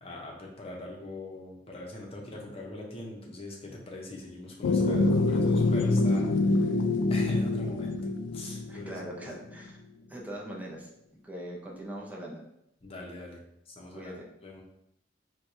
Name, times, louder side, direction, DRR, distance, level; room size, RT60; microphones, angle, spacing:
voice 1, 0.0-6.3 6.6-6.7 7.1-8.0 8.3-9.0 12.8-13.4 13.8-14.6, left 2 dB, 35° left, -1 dB, 0.7 m, -42 dB
sound 1, 4.6-9.3, left 2 dB, 70° left, 0.3 m, -26 dB
voice 2, 8.7-9.8 10.1-10.9 11.2-12.4 13.9-14.3, right 1 dB, 10° right, -3 dB, 0.6 m, -41 dB
4.5 x 2.2 x 2.6 m, 0.79 s
head